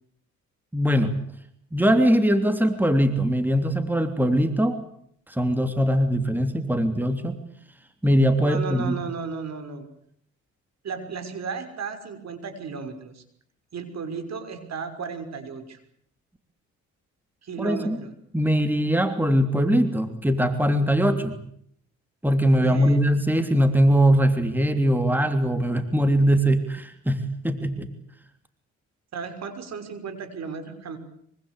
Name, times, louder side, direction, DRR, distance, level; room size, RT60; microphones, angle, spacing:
voice 1, 0.7-1.1 1.7-4.8 5.3-7.4 8.0-8.9 17.6-18.0 18.3-21.3 22.2-27.9, equal, 5° right, 8 dB, 3.2 m, -21 dB
voice 2, 8.4-9.9 10.8-13.2 13.7-15.8 17.4-18.1 22.5-23.1 29.1-31.0, right 5 dB, 60° right, 9 dB, 6.0 m, -34 dB
25.0 x 24.5 x 8.3 m, 0.68 s
cardioid pair, 90°, 30 cm